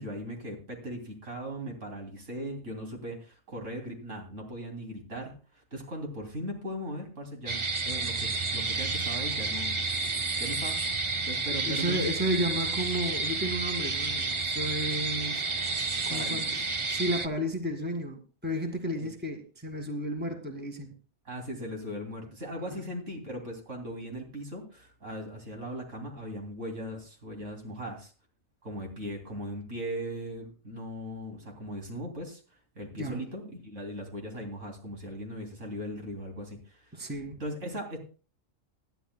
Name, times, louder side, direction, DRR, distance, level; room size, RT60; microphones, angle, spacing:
voice 1, 0.0-9.8 10.4-10.8 11.2-12.0 16.1-16.4 18.9-19.1 21.2-28.1 28.6-32.4 32.7-37.1 37.4-38.0, equal, 75° right, 1 dB, 3.3 m, -38 dB
sound 1, 7.5-17.3, right 3 dB, 35° right, 0.5 m, -30 dB
voice 2, 11.7-15.4 16.0-16.5 16.8-20.9 33.0-33.2 36.9-37.4, equal, 10° right, 4 dB, 1.8 m, -32 dB
19.5 x 12.0 x 2.2 m, 0.36 s
omnidirectional pair, 1.3 m